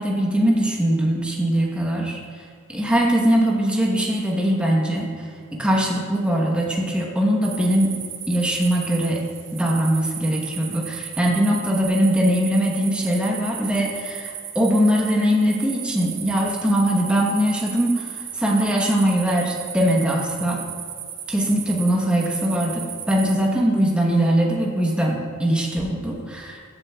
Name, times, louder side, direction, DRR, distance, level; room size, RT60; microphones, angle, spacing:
voice 1, 0.0-2.2 2.7-7.9 8.3-9.2 9.5-20.6 21.3-26.6, equal, 5° right, -2 dB, 1.0 m, -21 dB
sound 1, 7.4-23.3, right 9 dB, 80° right, 1.2 m, -35 dB
14.0 x 7.6 x 2.3 m, 2.2 s
head